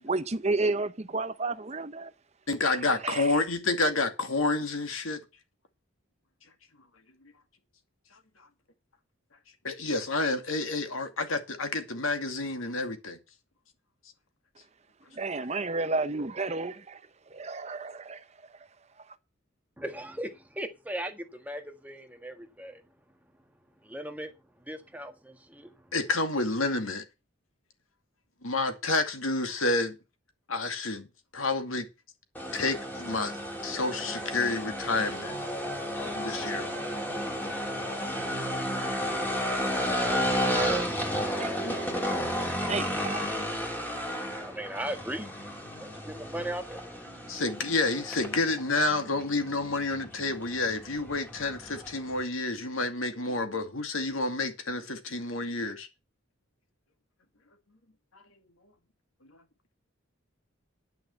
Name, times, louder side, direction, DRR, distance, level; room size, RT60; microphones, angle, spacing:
voice 1, 0.0-2.1 2.6-2.8 3.0-3.3 15.2-16.7 17.3-18.2 41.4-41.6 42.1-42.2 42.7-43.3, right 3 dB, 30° right, 0.8 m, -31 dB
voice 2, 2.5-5.2 9.6-13.2 25.9-27.1 28.4-29.9 30.5-31.0 31.3-31.8 32.5-33.3 33.6-35.3 36.2-36.7 41.6-41.7 47.3-55.9, left 3 dB, 80° left, 2.3 m, -29 dB
voice 3, 19.8-22.8 23.8-25.9 44.4-45.4 45.8-46.8, right 1 dB, 10° right, 1.6 m, -38 dB
sound 1, 32.4-52.2, equal, 10° left, 2.8 m, -33 dB
10.5 x 6.4 x 7.0 m
head